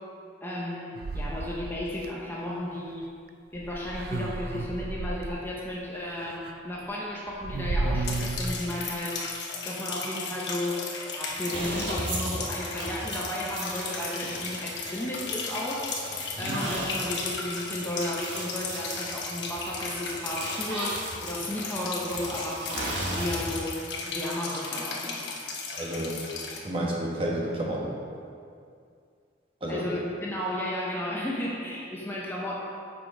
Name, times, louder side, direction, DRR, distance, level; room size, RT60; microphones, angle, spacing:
voice 1, 0.4-3.1 3.5-9.3 9.6-15.9 16.4-23.8 24.1-25.2 29.7-32.6, left 1 dB, 10° left, -4 dB, 0.8 m, -34 dB
sound 1, 1.0-2.1 3.6-5.3 6.2-6.5 6.8-6.9 7.3-8.5, right 2 dB, 50° right, 0.4 m, -32 dB
sound 2, 8.0-26.6, left 4 dB, 65° left, 1.0 m, -36 dB
sound 3, 11.3-23.7, right 1 dB, 75° right, 1.5 m, -37 dB
voice 2, 25.8-26.2 26.6-27.9 29.6-29.9, right 1 dB, 30° right, -3 dB, 1.1 m, -30 dB
7.6 x 5.2 x 4.8 m, 2.3 s
head